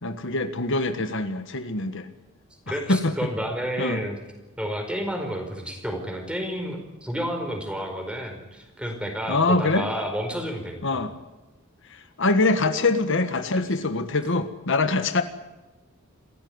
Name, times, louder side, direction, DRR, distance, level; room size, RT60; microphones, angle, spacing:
voice 1, 0.0-2.1 2.7-3.2 3.8-4.0 9.3-9.9 10.8-11.1 11.9-15.2, left 3 dB, 60° left, 9 dB, 1.5 m, -24 dB
voice 2, 2.7-4.2 4.6-11.0, equal, 5° right, 4 dB, 4.8 m, -31 dB
27.5 x 15.0 x 9.7 m, 1.1 s
head